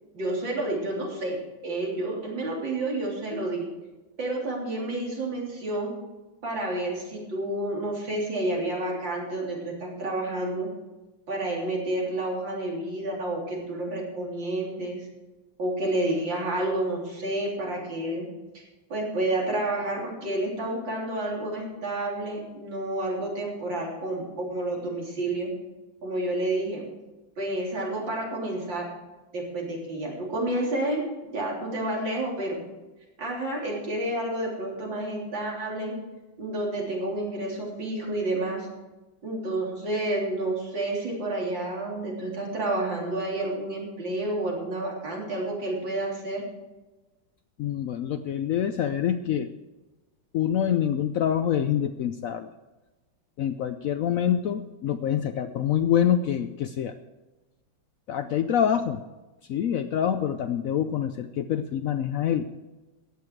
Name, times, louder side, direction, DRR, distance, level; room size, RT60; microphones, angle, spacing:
voice 1, 0.1-1.4 1.6-3.7 4.2-5.9 6.4-10.7 11.3-15.1 15.6-18.2 18.5-18.6 18.9-25.5 26.0-26.8 27.4-28.8 29.3-31.0 31.3-32.6 33.2-35.9 36.4-38.7 39.2-46.4, right 1 dB, 70° right, -2 dB, 4.1 m, -30 dB
voice 2, 47.6-49.5 50.3-52.5 53.4-56.9 58.1-59.0 59.5-62.5, left 9 dB, 85° left, 9 dB, 0.7 m, -26 dB
15.0 x 10.5 x 4.6 m, 1.1 s
omnidirectional pair, 2.1 m